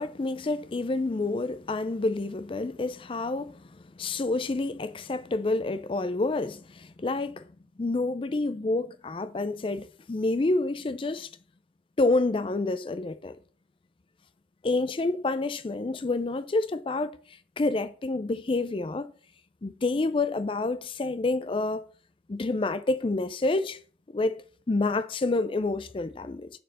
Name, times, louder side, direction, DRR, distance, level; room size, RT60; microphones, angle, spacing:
voice 1, 0.0-3.6 4.0-7.4 7.8-11.3 12.0-13.3 14.6-17.1 17.6-19.1 19.6-21.8 22.3-23.8 24.1-24.4 24.7-26.5, left 2 dB, 30° left, 0.4 m, -28 dB
6.6 x 4.4 x 6.4 m
head